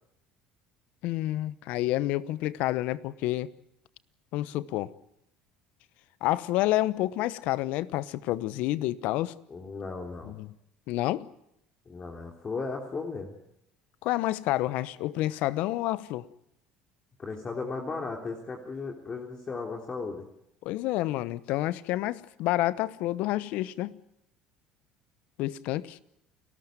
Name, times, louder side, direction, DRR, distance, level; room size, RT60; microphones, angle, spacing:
voice 1, 1.0-3.5 4.3-4.9 6.2-9.3 10.3-10.5 10.9-11.3 14.0-16.3 20.6-23.9 25.4-26.0, left 16 dB, 65° left, 0.9 m, -29 dB
voice 2, 9.5-10.4 11.9-13.3 17.2-20.3, left 4 dB, 35° left, 3.4 m, -36 dB
29.0 x 14.0 x 9.2 m
hypercardioid pair, 75°, 3 cm